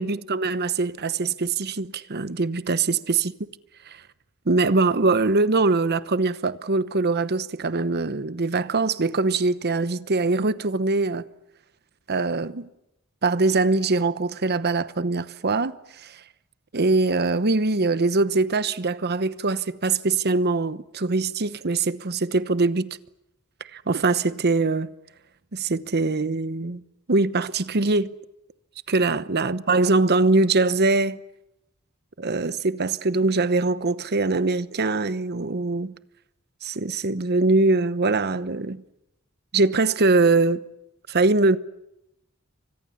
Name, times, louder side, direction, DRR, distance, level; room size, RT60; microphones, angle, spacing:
voice 1, 0.0-3.3 3.9-4.0 4.5-11.2 12.1-12.7 13.2-16.2 16.7-23.0 23.7-24.9 25.5-26.8 27.1-28.1 28.9-31.2 32.2-36.0 36.6-38.8 39.5-40.6 41.1-41.6, right 3 dB, 50° right, 1.0 m, -22 dB
29.5 x 25.0 x 7.3 m
head